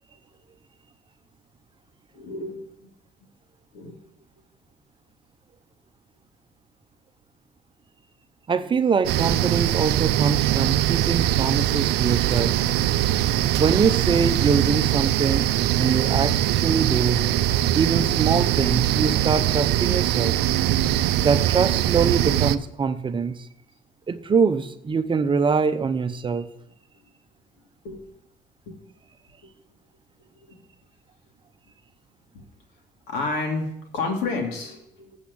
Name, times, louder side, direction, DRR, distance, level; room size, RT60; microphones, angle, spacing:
voice 1, 2.1-2.9 3.7-4.0 27.8-28.0 28.7-28.8 30.5-30.6 33.1-35.2, left 3 dB, 85° left, 1 dB, 2.8 m, -30 dB
voice 2, 8.5-12.6 13.5-15.5 15.8-17.2 17.7-20.3 21.2-23.5 24.1-26.5, right 5 dB, 30° right, 11 dB, 0.7 m, -24 dB
sound 1, 9.0-22.6, right 13 dB, 85° right, 0.5 m, -22 dB
8.1 x 7.1 x 8.6 m, 0.78 s
cardioid pair, 110°, 17 cm